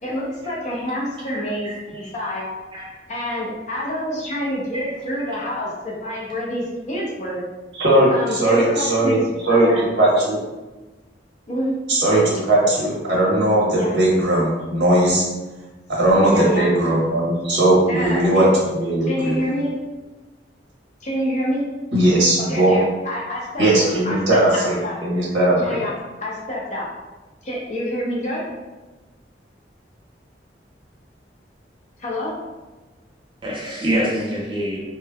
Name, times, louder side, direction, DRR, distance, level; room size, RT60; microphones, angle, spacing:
voice 1, 0.0-2.5 3.1-7.4 8.1-9.8 11.5-11.7 13.7-14.0 16.1-16.7 17.9-18.5 19.1-19.7 21.0-21.6 22.5-25.0 25.6-25.9 26.2-26.9 27.4-28.5 32.0-32.3, left 1 dB, 40° left, -4 dB, 0.6 m, -27 dB
voice 2, 7.8-9.2 9.4-10.4 11.9-15.2 16.0-19.5 21.9-22.7 23.6-25.8, right 1 dB, 90° right, -5 dB, 1.1 m, -18 dB
voice 3, 33.4-34.8, equal, 25° right, -4 dB, 0.4 m, -25 dB
3.1 x 2.1 x 2.3 m, 1.2 s
head